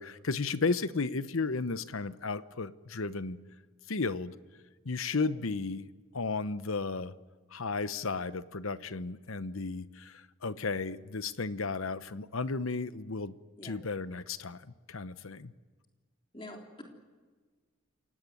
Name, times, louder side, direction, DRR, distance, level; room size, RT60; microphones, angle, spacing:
voice 1, 0.0-3.4 3.9-4.3 4.8-5.9 6.1-7.1 7.5-13.3 13.6-14.6 14.9-15.5, left 4 dB, 70° left, 14 dB, 0.9 m, -34 dB
voice 2, 16.3-16.8, left 1 dB, 25° left, 1 dB, 3.6 m, -46 dB
28.5 x 17.5 x 9.3 m, 1.4 s
head